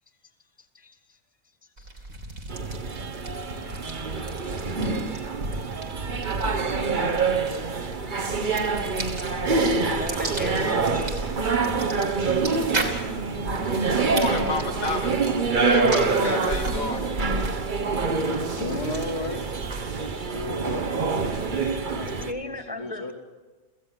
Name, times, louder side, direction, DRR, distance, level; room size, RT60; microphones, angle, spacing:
voice 1, 0.6-1.2 1.8-1.9 9.8-11.6 16.8-16.9 20.0-20.2 21.4-21.8 22.2-23.0, left 1 dB, 5° right, 5 dB, 1.3 m, -38 dB
sound 1, 1.8-20.0, right 2 dB, 75° right, 3.5 m, -36 dB
sound 2, 2.5-22.3, right 4 dB, 40° right, 1.2 m, -26 dB
voice 2, 14.0-15.2 15.7-17.1, left 4 dB, 80° left, 4 dB, 2.1 m, -30 dB
voice 3, 18.5-19.4 20.1-21.1 21.9-23.1, left 2 dB, 50° left, 1 dB, 3.3 m, -34 dB
26.5 x 15.5 x 7.9 m, 1.3 s
omnidirectional pair, 1.4 m